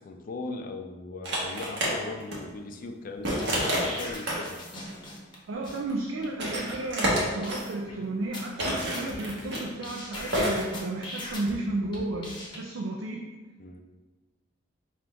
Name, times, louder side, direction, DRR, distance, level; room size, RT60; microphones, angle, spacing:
voice 1, 0.0-4.6 13.6-13.8, left 3 dB, 45° left, 6 dB, 0.4 m, -38 dB
sound 1, 1.2-1.9 2.2-2.4 3.2-4.5 4.8-5.0 5.9-6.0 6.3-7.6 8.6-9.6 10.3-10.6, equal, 60° right, 1.1 m, -28 dB
sound 2, 3.2-5.3 5.6-5.8 6.2-6.3 6.5-6.7 7.1-7.2 7.4-7.9 8.3-9.6 9.8-11.5 11.9-12.6, left 1 dB, 25° left, 0.8 m, -40 dB
voice 2, 5.5-13.2, right 2 dB, 80° right, 0 dB, 0.4 m, -33 dB
3.7 x 2.5 x 4.4 m, 1.3 s
head